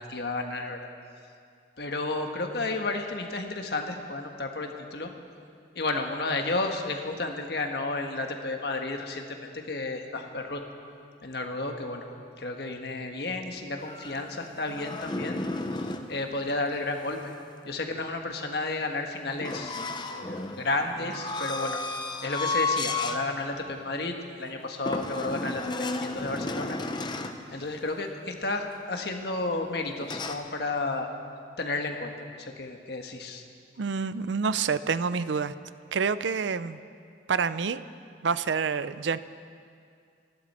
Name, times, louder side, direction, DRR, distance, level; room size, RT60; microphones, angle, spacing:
voice 1, 0.1-0.9 1.8-5.1 5.7-10.6 11.2-12.1 12.4-15.4 15.8-17.2 17.7-19.8 20.1-21.8 22.2-26.8 27.5-31.1 31.6-32.1 32.4-33.4, left 2 dB, 60° left, 4 dB, 1.4 m, -32 dB
sound 1, 13.8-16.1 19.4-23.2 23.7-23.9 24.8-27.4 30.0-30.3, left 3 dB, 25° left, 0.7 m, -33 dB
voice 2, 33.8-35.5 35.9-36.8 37.3-37.8 38.2-39.2, right 5 dB, 80° right, 14 dB, 0.5 m, -27 dB
27.5 x 11.5 x 4.3 m, 2.3 s
head